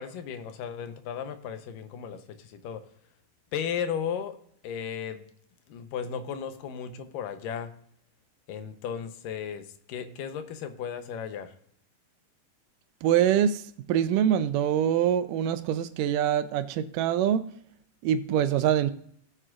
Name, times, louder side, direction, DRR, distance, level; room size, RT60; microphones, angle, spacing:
voice 1, 0.0-2.8 3.5-4.4 4.6-5.2 5.7-7.7 8.5-11.5, left 7 dB, 85° left, 8 dB, 2.5 m, -35 dB
voice 2, 13.0-13.6 13.9-17.5 18.0-18.9, right 10 dB, 80° right, 12 dB, 2.2 m, -24 dB
17.5 x 7.8 x 2.5 m, 0.65 s
omnidirectional pair, 3.8 m